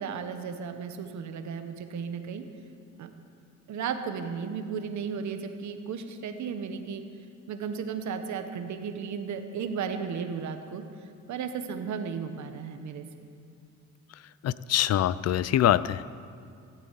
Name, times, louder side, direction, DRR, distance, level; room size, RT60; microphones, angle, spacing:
voice 1, 0.0-2.4 3.0-3.1 3.7-7.0 7.5-10.8 11.3-13.1, right 6 dB, 70° right, 7 dB, 1.3 m, -34 dB
voice 2, 14.4-16.0, left 12 dB, 55° left, 18 dB, 0.5 m, -24 dB
15.0 x 8.9 x 8.4 m, 2.3 s
cardioid pair, 90°, 30 cm